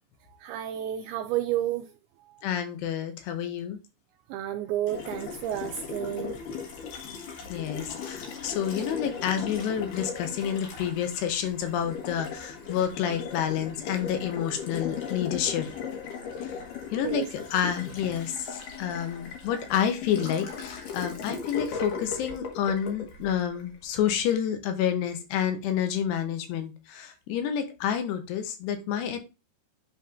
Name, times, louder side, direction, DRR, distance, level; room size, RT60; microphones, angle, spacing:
voice 1, 0.4-1.9 2.3-2.4 4.3-6.4 17.0-17.3, right 12 dB, 85° right, 2.2 m, -31 dB
voice 2, 2.4-3.8 6.9-7.2 7.5-15.7 16.4-16.6 16.9-17.2 17.5-29.2, left 9 dB, 80° left, 3.0 m, -29 dB
Water tap faucet, 4.9-24.0, left 6 dB, 60° left, 2.6 m, -38 dB
10.5 x 4.2 x 2.6 m
omnidirectional pair, 4.9 m